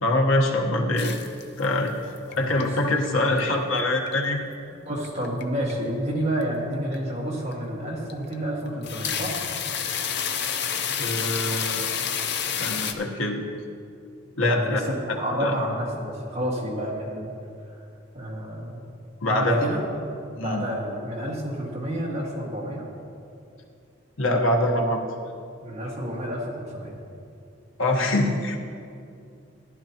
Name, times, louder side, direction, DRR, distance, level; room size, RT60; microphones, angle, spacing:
voice 1, 0.0-1.1 1.6-1.9 2.4-4.4 11.0-11.9 12.6-13.4 14.4-14.8 15.1-15.5 19.2-19.7 20.4-20.6 24.2-25.0 27.8-28.6, left 1 dB, 75° left, 1 dB, 1.2 m, -24 dB
sound 1, 1.0-1.9 2.2-2.6 3.1-3.6 4.1-4.2 5.0-5.4 5.7-5.9 6.4-6.5 6.9-7.0 7.5-7.6 8.1-8.3 8.7-12.9, left 7 dB, 55° left, 0.6 m, -29 dB
voice 2, 2.9-3.5 4.8-9.4 14.4-17.3 18.1-18.8 19.3-19.8 20.4-22.8 25.6-27.0, equal, 30° right, -4 dB, 1.8 m, -30 dB
14.5 x 11.0 x 2.9 m, 2.5 s
head